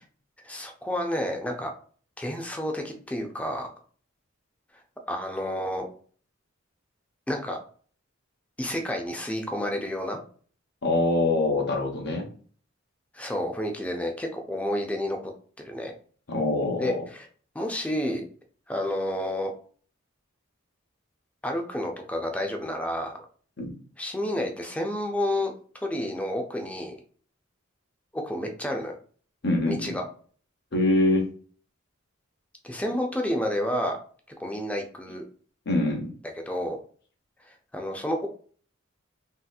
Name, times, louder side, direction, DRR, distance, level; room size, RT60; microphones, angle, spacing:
voice 1, 0.4-1.7 2.2-3.7 5.1-5.8 7.3-7.6 8.6-10.2 13.1-15.2 15.6-15.9 16.8-17.3 17.5-18.2 18.7-19.5 21.4-23.1 24.0-27.0 28.1-29.0 29.7-30.0 32.6-34.0 34.4-35.2 36.4-36.8 37.5-38.3, left 1 dB, 5° left, 3 dB, 0.4 m, -30 dB
voice 2, 10.8-12.3 16.3-17.0 23.6-23.7 29.4-30.0 30.7-31.3 35.7-36.1, left 2 dB, 55° left, 2 dB, 0.8 m, -24 dB
3.2 x 2.8 x 2.3 m, 0.43 s
head